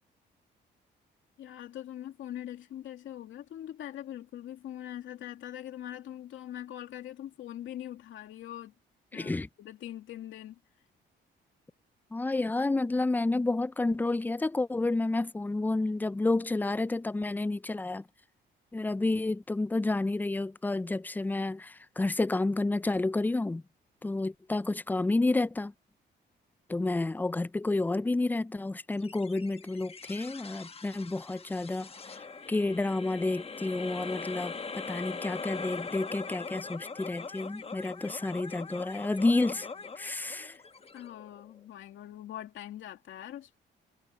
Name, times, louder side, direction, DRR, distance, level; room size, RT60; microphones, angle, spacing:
voice 1, 1.4-8.7 9.1-9.3 9.6-10.6 40.9-43.6, left 12 dB, 75° left, 2.5 m, -42 dB
voice 2, 9.1-9.5 12.1-18.0 18.7-23.6 24.0-25.7 26.7-31.9 32.5-39.7 40.0-40.5, left 2 dB, 10° left, 0.4 m, -30 dB
sound 1, 29.0-41.6, left 4 dB, 30° left, 1.1 m, -42 dB
cardioid pair, 90°, 20 cm